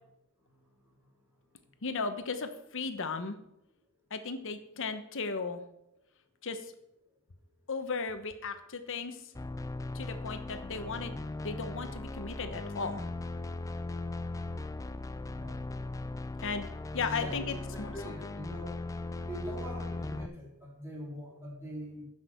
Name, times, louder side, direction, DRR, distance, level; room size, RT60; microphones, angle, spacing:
voice 1, 1.8-3.4 4.1-5.6 6.4-6.7 7.7-9.2 9.9-11.1 11.4-13.1 16.4-16.7 16.9-18.1, left 4 dB, 65° left, 9 dB, 1.0 m, -36 dB
sound 1, 9.3-20.3, left 2 dB, 15° left, 0.3 m, -38 dB
voice 2, 17.1-18.7 19.2-22.1, equal, 10° right, -5 dB, 3.9 m, -43 dB
14.5 x 6.2 x 4.5 m, 0.82 s
head